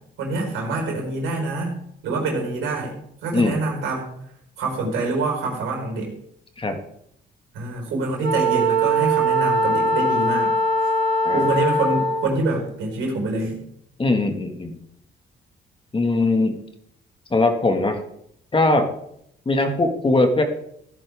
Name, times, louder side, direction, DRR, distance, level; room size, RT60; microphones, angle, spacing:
voice 1, 0.2-1.8 2.0-2.9 3.2-4.1 4.6-6.1 7.5-10.5 11.3-13.6, right 2 dB, 90° right, 0 dB, 4.6 m, -26 dB
Wind instrument woodwind instrument, 8.2-12.4, right 1 dB, 70° right, 2.2 m, -21 dB
voice 2, 14.0-14.8 15.9-16.6 17.3-18.0 18.5-18.9 19.5-20.4, left 2 dB, 25° left, 5 dB, 1.9 m, -20 dB
16.0 x 10.5 x 3.6 m, 0.71 s
cardioid pair, 90°, 20 cm